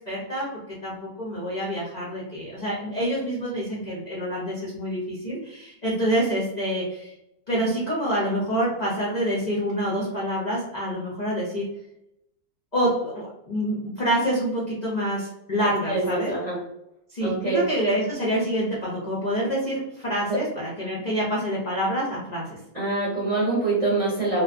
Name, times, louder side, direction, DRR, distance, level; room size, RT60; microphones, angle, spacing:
voice 1, 0.1-0.5 0.8-7.1 7.5-11.6 12.7-16.4 17.1-22.4, equal, 55° left, -5 dB, 0.4 m, -27 dB
voice 2, 15.9-16.6 17.2-17.7 20.3-20.4 22.7-24.4, right 2 dB, 35° right, -7 dB, 0.5 m, -25 dB
2.6 x 2.2 x 2.4 m, 0.84 s
omnidirectional pair, 1.6 m